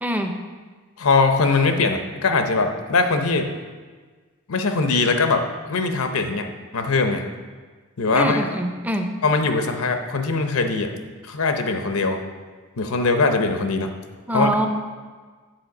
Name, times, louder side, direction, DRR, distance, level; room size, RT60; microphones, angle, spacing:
voice 1, 0.0-0.3 8.1-9.1 14.3-14.7, right 1 dB, 5° right, 5 dB, 0.5 m, -23 dB
voice 2, 1.0-3.5 4.5-6.5 6.7-7.2 8.0-8.4 9.2-10.9 11.2-12.2 12.8-13.9 14.3-14.5, left 3 dB, 85° left, 6 dB, 0.7 m, -21 dB
7.9 x 4.3 x 5.9 m, 1.4 s
head